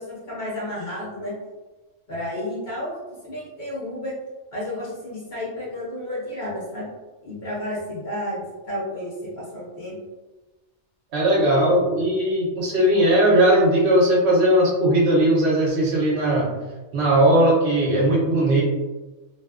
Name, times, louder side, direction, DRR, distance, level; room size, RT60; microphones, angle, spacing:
voice 1, 0.0-1.3 2.1-2.9 3.2-4.1 4.5-6.9 7.2-10.0, left 1 dB, 45° left, -8 dB, 0.8 m, -31 dB
voice 2, 11.1-16.5 16.9-18.6, right 1 dB, 65° right, -4 dB, 0.9 m, -18 dB
2.6 x 2.2 x 2.3 m, 1.2 s
omnidirectional pair, 1.2 m